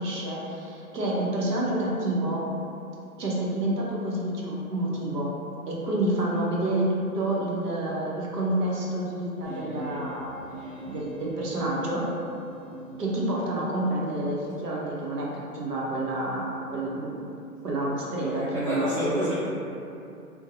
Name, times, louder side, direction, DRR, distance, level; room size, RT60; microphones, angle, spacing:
voice 1, 0.0-2.4 3.2-5.3 5.7-10.6 10.9-12.1 13.0-17.3 17.6-19.2, right 1 dB, 85° right, -4 dB, 0.8 m, -28 dB
sound 1, 9.4-13.2, equal, 35° right, 0.9 m, -41 dB
voice 2, 18.2-19.4, equal, 5° left, -26 dB, 0.6 m, -30 dB
2.5 x 2.2 x 2.7 m, 2.7 s
figure-of-eight pair, 155°, 46 cm